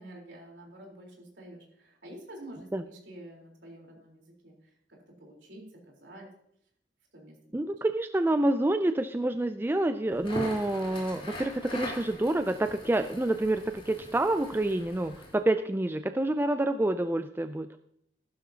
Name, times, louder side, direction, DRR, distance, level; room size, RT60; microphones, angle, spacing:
voice 1, 0.0-6.3 7.1-7.5, right 1 dB, 65° right, -1 dB, 3.8 m, -48 dB
voice 2, 7.5-17.8, right 1 dB, 10° right, 9 dB, 0.3 m, -28 dB
Crackle, 10.1-15.4, equal, 30° left, 3.6 m, -41 dB
14.5 x 12.0 x 2.8 m, 0.73 s
head